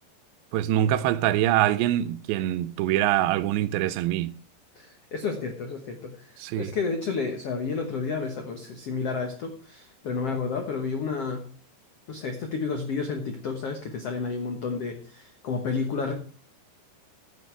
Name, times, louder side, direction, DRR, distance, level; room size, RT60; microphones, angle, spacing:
voice 1, 0.5-4.3 6.4-6.7, right 13 dB, 90° right, 2.9 m, -24 dB
voice 2, 4.8-6.3 6.6-11.5 12.1-16.1, left 4 dB, 85° left, 1.3 m, -31 dB
14.5 x 8.0 x 4.6 m
omnidirectional pair, 5.0 m